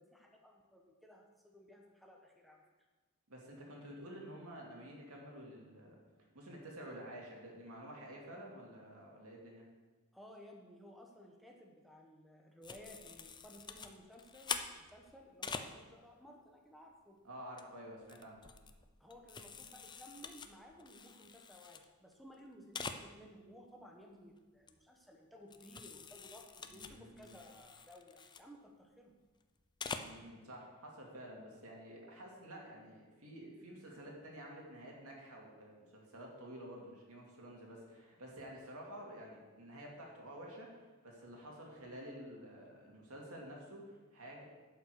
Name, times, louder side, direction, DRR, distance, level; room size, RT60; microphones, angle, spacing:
voice 1, 0.0-2.6 10.1-17.2 19.0-29.1, equal, ahead, 0 dB, 1.0 m, -57 dB
voice 2, 3.3-6.0 6.3-9.7 17.2-18.4 26.7-27.4 29.9-44.4, equal, 75° right, -1 dB, 2.4 m, -50 dB
sound 1, 12.6-15.7 17.3-17.6 18.0-21.8 22.1-22.2 22.4-22.5 22.7-23.0 24.7-24.8 25.5-28.4 29.6-30.1, left 5 dB, 20° left, 0.5 m, -46 dB
11.0 x 5.7 x 6.5 m, 1.3 s
head